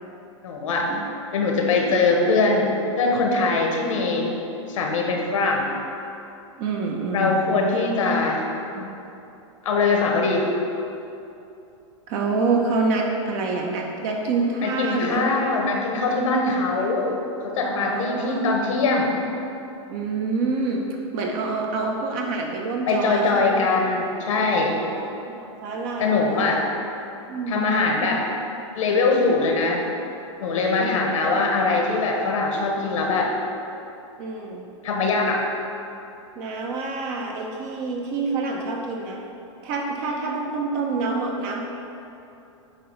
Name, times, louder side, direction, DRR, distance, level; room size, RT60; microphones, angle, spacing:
voice 1, 0.4-0.9 1.3-4.3 4.7-5.7 7.1-8.5 9.6-10.5 14.6-19.1 22.9-24.8 26.0-26.6 27.5-28.2 28.7-29.8 30.4-33.3 34.8-35.4, left 3 dB, 80° left, 1 dB, 1.3 m, -22 dB
voice 2, 6.6-7.3 8.8-8.9 12.1-15.3 16.4-17.1 17.6-18.5 19.9-20.9 21.1-23.6 24.8-26.4 27.3-28.2 29.1-29.4 30.8-31.1 34.2-34.7 36.4-39.3 39.6-41.6, right 3 dB, 45° right, 1 dB, 0.8 m, -27 dB
8.4 x 2.8 x 5.5 m, 2.9 s
hypercardioid pair, 130°, 16 cm